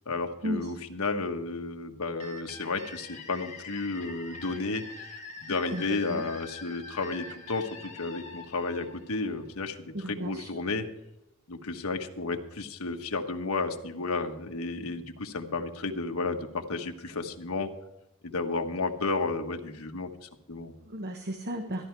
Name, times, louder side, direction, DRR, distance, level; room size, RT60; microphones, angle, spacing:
voice 1, 0.1-10.9 11.5-17.7 18.2-20.8, left 3 dB, 80° left, 5 dB, 1.3 m, -32 dB
sound 1, 2.2-9.8, left 3 dB, 30° left, 1.8 m, -45 dB
voice 2, 9.9-10.5 20.9-21.8, equal, 45° right, 5 dB, 1.1 m, -34 dB
13.5 x 11.5 x 4.6 m, 0.87 s
head